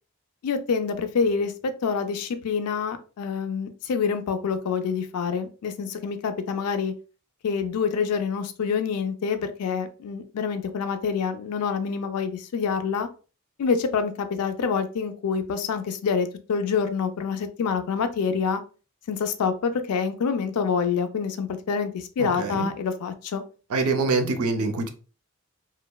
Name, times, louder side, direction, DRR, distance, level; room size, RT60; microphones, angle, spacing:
voice 1, 0.4-6.9 7.4-13.1 13.6-18.6 19.1-23.4, left 6 dB, 90° left, 8 dB, 0.4 m, -26 dB
voice 2, 22.2-22.7 23.7-24.9, right 3 dB, 75° right, 6 dB, 0.4 m, -25 dB
2.8 x 2.0 x 2.2 m, 0.36 s
head